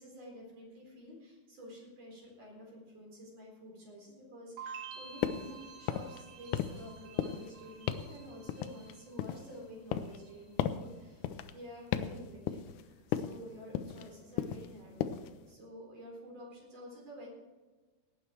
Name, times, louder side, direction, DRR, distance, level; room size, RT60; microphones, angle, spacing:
voice 1, 0.0-17.3, equal, 40° right, -1 dB, 5.0 m, -50 dB
sound 1, 4.6-9.6 9.9-10.5, right 6 dB, 75° right, 3.6 m, -50 dB
sound 2, 5.2-5.5 5.8-6.2 6.5-6.9 7.2-7.5 7.9-8.1 8.5-9.5 9.9-10.2 10.6-10.9 11.2-11.5 11.9-12.2 12.5-12.8 13.1-13.4 13.7-14.1 14.4-14.7 15.0-15.3, left 10 dB, 90° left, 1.7 m, -35 dB
18.0 x 9.1 x 4.5 m, 1.3 s
omnidirectional pair, 4.4 m